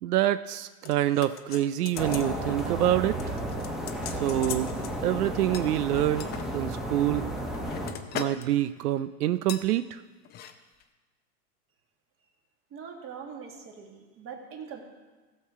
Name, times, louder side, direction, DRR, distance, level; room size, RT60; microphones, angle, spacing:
voice 1, 0.0-3.2 4.2-4.7 5.0-7.2 8.1-10.0, right 13 dB, 90° right, 13 dB, 0.5 m, -26 dB
sound 1, 0.9-2.3 2.6-2.9 3.2-4.9 5.5-6.5 7.1-8.5 8.8-9.0 9.5-9.7 10.2-10.5 10.8-10.9, left 9 dB, 25° left, 0.6 m, -40 dB
sound 2, 2.0-7.9, right 1 dB, ahead, 1.1 m, -33 dB
voice 2, 12.7-14.8, right 6 dB, 30° right, 2 dB, 1.8 m, -42 dB
16.0 x 6.7 x 4.6 m, 1.3 s
hypercardioid pair, 125°, 44 cm